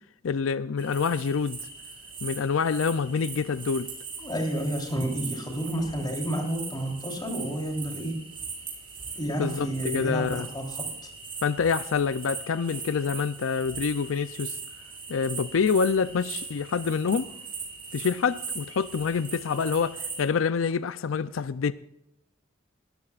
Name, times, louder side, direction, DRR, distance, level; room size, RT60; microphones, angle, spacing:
voice 1, 0.2-1.6 2.2-3.9 9.4-10.5 11.4-14.6 15.1-17.3 17.9-21.7, left 5 dB, 90° left, 0.5 m, -26 dB
sound 1, 0.8-20.3, right 5 dB, 30° right, 5.5 m, -39 dB
voice 2, 4.2-8.2 9.2-10.8 19.4-19.7, right 1 dB, 20° left, 3.5 m, -30 dB
21.5 x 14.0 x 2.4 m
head